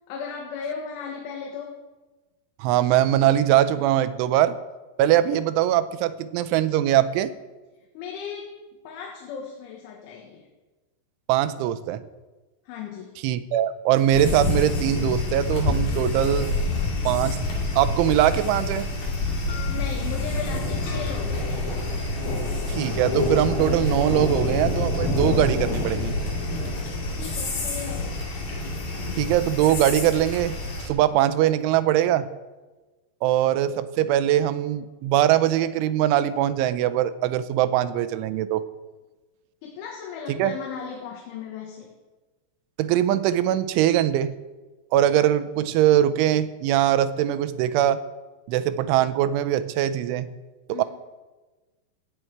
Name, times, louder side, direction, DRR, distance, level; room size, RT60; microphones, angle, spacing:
voice 1, 0.1-1.8 8.0-8.5 8.9-10.5 12.7-13.2 19.7-21.8 27.1-28.2 39.6-41.9 50.7-50.8, left 6 dB, 85° left, 0 dB, 3.9 m, -36 dB
voice 2, 2.6-4.6 5.0-7.3 11.3-12.0 13.2-16.5 17.1-17.4 17.8-18.9 22.7-26.2 29.2-32.3 33.2-38.7 40.4-40.5 42.8-44.4 44.9-48.0 48.5-50.3 50.8-50.9, right 12 dB, 85° right, 13 dB, 3.1 m, -22 dB
sound 1, 14.1-30.9, left 2 dB, 45° left, 3.1 m, -27 dB
16.5 x 8.8 x 4.7 m, 1.2 s
omnidirectional pair, 5.4 m